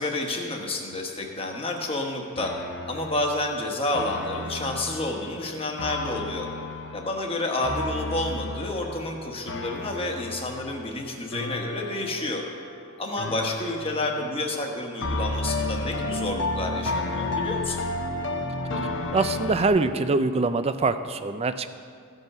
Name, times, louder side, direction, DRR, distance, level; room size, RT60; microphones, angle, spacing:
voice 1, 0.0-2.6 2.9-6.5 6.9-12.4 13.0-17.8, left 2 dB, 25° left, 1 dB, 1.1 m, -30 dB
sound 1, 2.4-12.8 13.2-14.6 15.0-19.7, left 2 dB, 55° left, 0.7 m, -32 dB
voice 2, 19.1-21.7, right 3 dB, 25° right, 11 dB, 0.4 m, -24 dB
15.0 x 5.5 x 5.9 m, 2.2 s
head